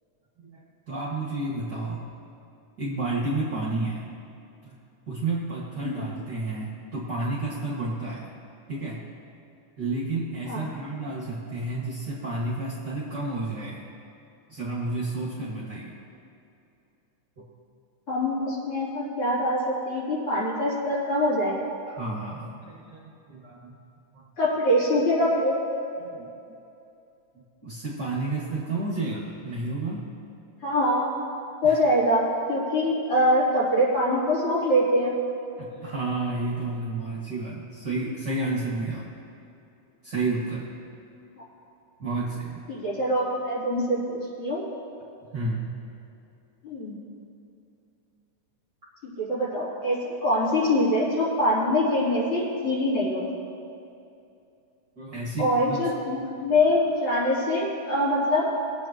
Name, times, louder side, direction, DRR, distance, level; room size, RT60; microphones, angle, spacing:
voice 1, 0.4-2.0 2.8-4.0 4.6-4.7 5.1-8.3 8.7-9.0 9.8-13.8 14.5-16.0 17.4-17.5 21.9-23.8 24.1-24.2 26.0-26.3 27.6-30.1 31.6-31.7 35.6-39.1 40.0-40.7 42.0-42.6 45.3-45.7 55.0-55.9, right 2 dB, 40° right, -7 dB, 2.2 m, -31 dB
voice 2, 18.1-21.5 24.4-25.6 30.6-31.1 31.6-35.1 42.7-44.6 46.6-46.9 49.0-53.2 55.4-58.5, left 1 dB, 45° left, -9 dB, 4.3 m, -24 dB
24.5 x 8.8 x 3.0 m, 2.7 s
omnidirectional pair, 3.6 m